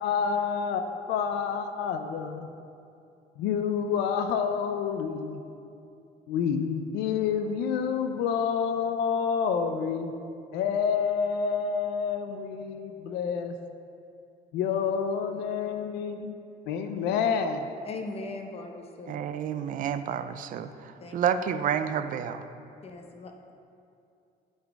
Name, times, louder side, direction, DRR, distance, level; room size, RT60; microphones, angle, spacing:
voice 1, 0.0-2.5 3.4-5.4 6.3-10.1 10.5-13.6 14.5-16.3 16.7-17.7, left 6 dB, 80° left, 7 dB, 0.4 m, -28 dB
voice 2, 17.8-19.2 21.0-21.4 22.8-23.5, left 2 dB, 35° left, 3 dB, 0.8 m, -40 dB
voice 3, 19.1-22.5, right 8 dB, 50° right, 10 dB, 0.4 m, -30 dB
11.0 x 4.0 x 3.5 m, 2.6 s
cardioid pair, 110°, 17 cm